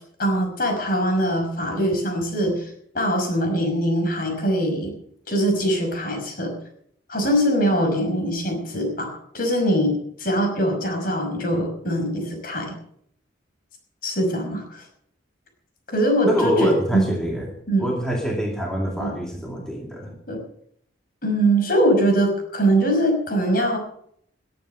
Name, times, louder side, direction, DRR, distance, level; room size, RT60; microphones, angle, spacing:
voice 1, 0.2-4.9 5.3-6.5 7.1-12.8 14.0-14.9 15.9-17.1 17.7-17.9 19.0-19.2 20.3-20.4 21.2-23.8, right 1 dB, 45° left, 3 dB, 5.6 m, -22 dB
voice 2, 16.3-17.5 17.8-20.2, equal, 5° left, -1 dB, 2.5 m, -25 dB
20.0 x 9.3 x 6.7 m, 0.67 s
head